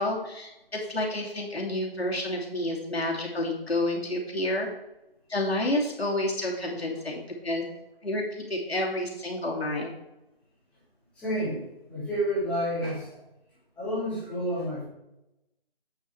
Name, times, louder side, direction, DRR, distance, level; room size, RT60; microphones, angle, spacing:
voice 1, 0.0-4.7 5.3-7.6 8.0-8.2 8.5-9.9, left 1 dB, 90° left, -1 dB, 3.0 m, -29 dB
voice 2, 11.2-13.1 13.8-14.8, equal, 5° left, -11 dB, 2.7 m, -30 dB
8.7 x 6.8 x 4.4 m, 0.90 s
figure-of-eight pair, 165°, 30 cm